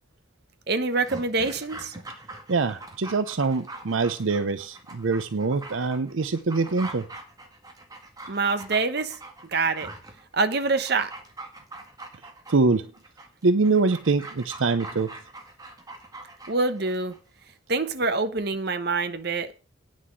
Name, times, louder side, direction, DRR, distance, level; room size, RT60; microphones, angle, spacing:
voice 1, 0.7-1.9 8.3-9.2 9.4-9.9 10.3-11.1 16.5-17.1 17.7-19.5, right 3 dB, 55° right, 1.0 m, -25 dB
Dog, 0.9-17.2 17.5-17.6, right 2 dB, 20° right, 1.8 m, -43 dB
voice 2, 2.5-7.0 12.5-12.9 13.4-15.1, right 3 dB, 80° right, 0.7 m, -24 dB
9.5 x 6.3 x 7.6 m
head